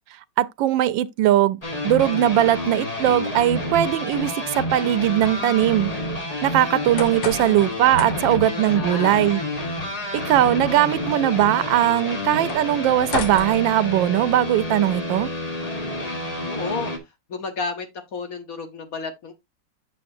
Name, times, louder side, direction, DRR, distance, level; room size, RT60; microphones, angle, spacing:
voice 1, 0.4-1.6 1.8-5.9 6.4-9.4 10.1-15.3, right 13 dB, 85° right, 1.3 m, -20 dB
sound 1, 1.6-17.0, left 1 dB, 25° left, 1.3 m, -29 dB
sound 2, 6.7-14.4, left 4 dB, 80° left, 1.8 m, -36 dB
voice 2, 8.1-9.2 16.4-16.9 17.3-19.3, left 4 dB, 55° left, 1.3 m, -32 dB
8.6 x 6.4 x 2.6 m
omnidirectional pair, 2.0 m